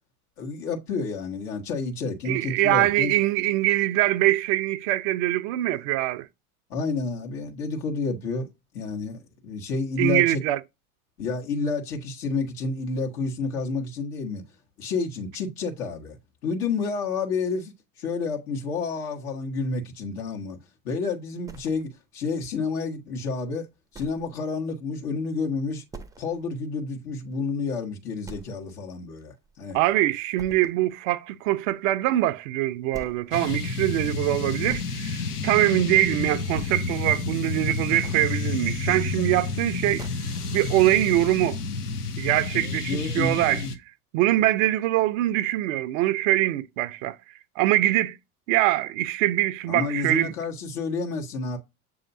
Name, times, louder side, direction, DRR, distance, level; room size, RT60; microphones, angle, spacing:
voice 1, 0.4-3.1 6.7-8.5 8.7-10.4 11.2-14.4 14.8-16.2 16.4-17.7 18.0-20.6 20.8-23.7 23.9-25.8 26.2-29.8 42.5-43.7 44.3-44.4 49.7-51.6, left 4 dB, 70° left, 1.3 m, -30 dB
voice 2, 2.3-6.3 10.0-10.6 29.7-41.6 42.2-43.6 44.1-47.2 47.6-48.2 48.5-50.3, right 15 dB, 60° right, 0.5 m, -23 dB
sound 1, 21.5-22.2 22.6-22.7 23.2-23.3 23.9-24.4 24.7-24.8 25.2-25.3 25.9-26.5 26.8-26.9 27.4-27.5 28.2-28.9 29.2-29.9 30.4-30.9 32.2-32.3 32.9-33.3 34.3-34.9 35.9-36.1 36.5-37.1 37.7-38.4 39.6-39.7 40.0-40.5, right 4 dB, 10° right, 0.4 m, -44 dB
sound 2, 33.3-43.7, left 4 dB, 90° left, 0.7 m, -30 dB
7.0 x 2.7 x 2.6 m
hypercardioid pair, 75°, 45 cm